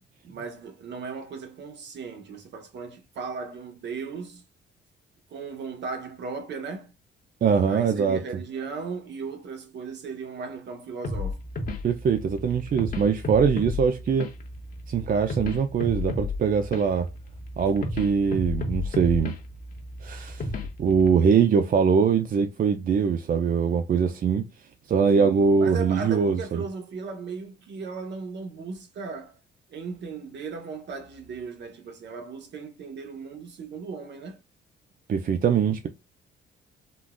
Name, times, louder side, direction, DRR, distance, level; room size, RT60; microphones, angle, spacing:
voice 1, 0.2-4.4 5.3-6.9 7.7-11.4 25.1-29.4 29.7-34.4, right 5 dB, 60° right, 0.9 m, -37 dB
voice 2, 7.4-8.2 11.8-14.3 14.9-17.1 17.6-19.3 20.0-20.4 20.8-24.4 24.9-26.6 35.1-35.9, right 6 dB, 45° right, 0.5 m, -22 dB
sound 1, 11.0-21.1, left 3 dB, 45° left, 0.9 m, -33 dB
3.8 x 2.4 x 2.2 m
cardioid pair, 90°, 20 cm